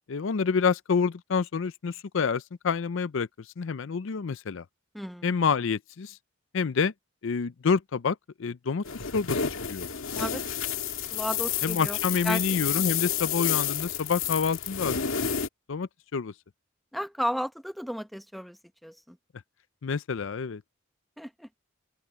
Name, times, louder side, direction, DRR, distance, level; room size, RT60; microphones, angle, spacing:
voice 1, 0.1-3.3 3.6-4.6 5.2-6.2 6.5-6.9 7.2-8.8 9.1-9.4 9.7-9.9 11.6-15.1 15.7-16.3 19.8-20.6, left 5 dB, 65° left, 0.5 m, -28 dB
voice 2, 4.9-5.4 10.1-10.4 11.1-12.0 12.2-12.4 12.7-12.8 16.9-18.6 18.8-19.2 21.2-21.5, equal, ahead, 1.0 m, -33 dB
sound 1, 8.8-15.5, left 8 dB, 85° left, 2.0 m, -30 dB
open air
head